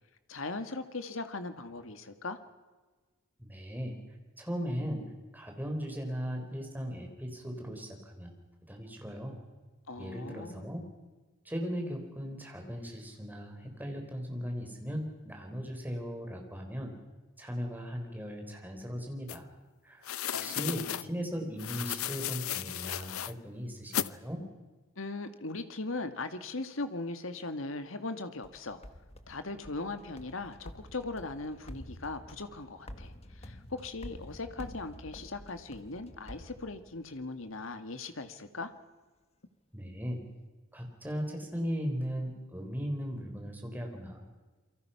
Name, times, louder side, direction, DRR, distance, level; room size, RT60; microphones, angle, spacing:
voice 1, 0.3-2.4 9.9-10.7 20.3-21.0 25.0-28.8 29.3-38.7, left 3 dB, 65° left, 8 dB, 1.9 m, -39 dB
voice 2, 3.4-4.0 4.4-8.3 8.7-9.4 10.0-10.9 11.4-16.9 17.4-19.5 19.8-20.0 20.4-24.4 39.7-40.2 40.7-44.2, equal, 10° right, 2 dB, 4.3 m, -37 dB
sound 1, 19.3-19.4 20.0-21.0 21.6-23.3 23.9-24.1, left 10 dB, 85° left, 0.7 m, -35 dB
sound 2, 28.4-37.2, left 1 dB, 30° left, 1.3 m, -49 dB
28.0 x 24.0 x 5.8 m, 1.3 s
head